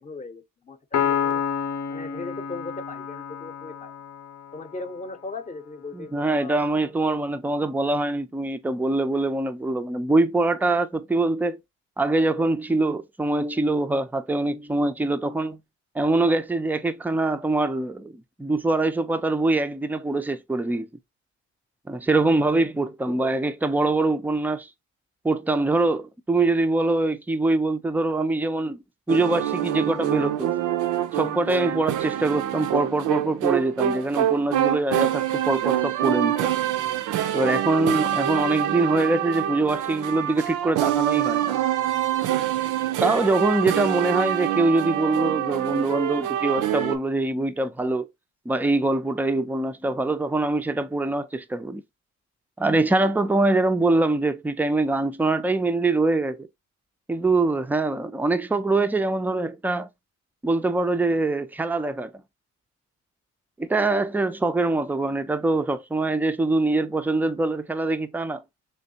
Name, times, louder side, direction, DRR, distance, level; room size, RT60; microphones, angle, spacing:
voice 1, 0.0-1.4 1.9-4.0 4.5-6.6 23.1-23.3 32.8-32.9, left 3 dB, 25° left, 0.7 m, -38 dB
Piano, 0.9-4.5, left 7 dB, 65° left, 0.6 m, -29 dB
voice 2, 5.9-11.6 12.0-15.6 15.9-20.9 21.9-24.7 25.2-30.5 31.1-36.5 37.3-41.6 43.0-48.1 48.5-51.8 52.6-56.5 57.1-59.9 60.4-62.1 63.6-68.4, right 2 dB, 5° right, 0.3 m, -24 dB
sound 1, 29.1-47.0, right 11 dB, 85° right, 0.5 m, -25 dB
3.3 x 3.0 x 2.7 m
cardioid pair, 90°, 30 cm